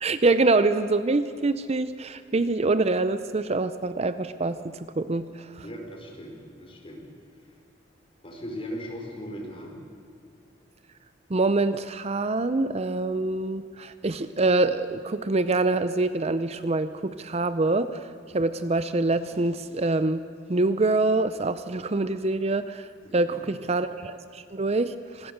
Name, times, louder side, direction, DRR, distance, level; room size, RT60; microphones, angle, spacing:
voice 1, 0.0-5.3 5.6-5.7 11.3-18.0 18.3-20.2 20.5-22.9 23.1-25.3, right 2 dB, 35° right, 12 dB, 0.6 m, -25 dB
voice 2, 5.6-7.1 8.2-9.7 23.0-23.4, equal, 30° left, 1 dB, 4.5 m, -38 dB
26.0 x 20.0 x 6.7 m, 2.5 s
head